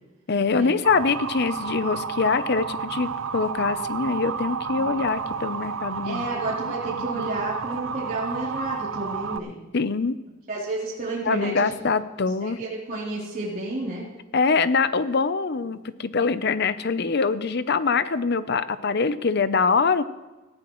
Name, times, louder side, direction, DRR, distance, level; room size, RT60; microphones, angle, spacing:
voice 1, 0.3-6.2 7.2-7.3 9.7-10.2 11.2-12.6 14.3-20.0, left 4 dB, 55° left, 13 dB, 0.7 m, -24 dB
Motor vehicle (road) / Siren, 0.8-9.4, right 6 dB, 80° right, 0.6 m, -31 dB
voice 2, 6.0-9.5 10.5-11.7 12.4-14.0, right 2 dB, 45° right, -6 dB, 3.4 m, -31 dB
18.5 x 15.0 x 3.1 m, 1.2 s
head